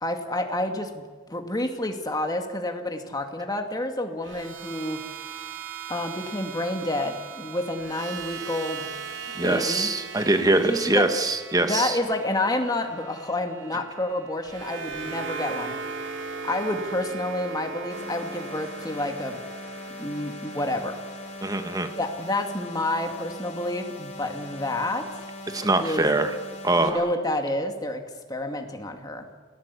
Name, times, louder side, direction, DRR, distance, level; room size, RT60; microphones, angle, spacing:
voice 1, 0.0-1.0 1.3-5.0 5.9-8.9 9.4-10.2 10.6-11.1 11.6-15.8 16.4-19.4 20.0-21.0 22.0-25.3 25.8-26.1 26.8-28.0 28.3-29.3, left 1 dB, 20° left, 4 dB, 2.3 m, -29 dB
sound 1, 4.2-22.4, right 5 dB, 75° right, 2.6 m, -39 dB
voice 2, 9.3-12.0 21.4-21.9 25.5-26.3 26.6-27.0, right 2 dB, 20° right, 7 dB, 1.5 m, -23 dB
sound 2, 17.9-26.9, left 2 dB, 35° left, 4.3 m, -40 dB
29.0 x 18.5 x 8.5 m, 1.5 s
head